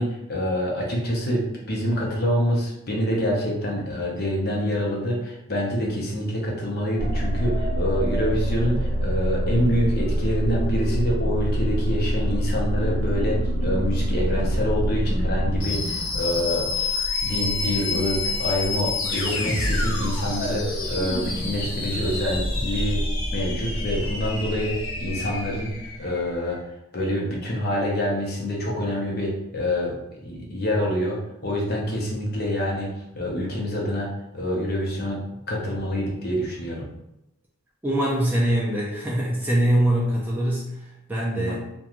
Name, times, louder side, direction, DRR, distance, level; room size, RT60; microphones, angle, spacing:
voice 1, 0.0-23.0 23.3-25.7 26.0-26.6 26.9-30.0 30.2-32.9 33.1-35.2 35.5-36.9 41.3-41.5, equal, 45° left, -2 dB, 0.7 m, -26 dB
sound 1, 7.0-26.3, left 1 dB, 75° left, 0.9 m, -26 dB
voice 2, 37.8-41.6, right 1 dB, 10° right, -5 dB, 0.4 m, -23 dB
3.0 x 2.2 x 2.4 m, 0.88 s
head